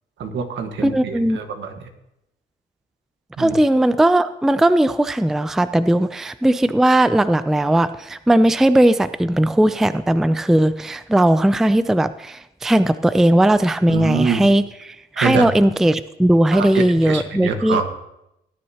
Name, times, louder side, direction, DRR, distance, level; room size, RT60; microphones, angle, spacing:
voice 1, 0.2-1.7 3.4-3.6 13.9-14.4 15.2-15.5 16.5-17.9, right 5 dB, 70° right, 6 dB, 1.5 m, -24 dB
voice 2, 0.8-1.4 3.4-17.8, right 1 dB, ahead, 13 dB, 0.4 m, -17 dB
18.5 x 9.7 x 2.9 m, 0.84 s
cardioid pair, 90°, 20 cm